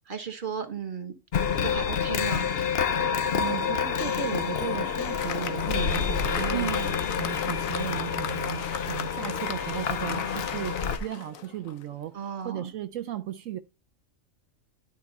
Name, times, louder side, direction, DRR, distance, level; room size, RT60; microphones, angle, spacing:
voice 1, 0.1-1.1 1.6-2.5 6.5-6.9 12.1-12.7, right 7 dB, 40° right, 1.7 m, -34 dB
sound 1, 1.3-11.0, left 7 dB, 50° left, 1.0 m, -28 dB
voice 2, 3.0-6.8 7.2-13.6, right 13 dB, 75° right, 1.0 m, -36 dB
Applause, 4.4-11.9, left 8 dB, 80° left, 1.2 m, -37 dB
12.0 x 4.7 x 4.2 m
omnidirectional pair, 1.4 m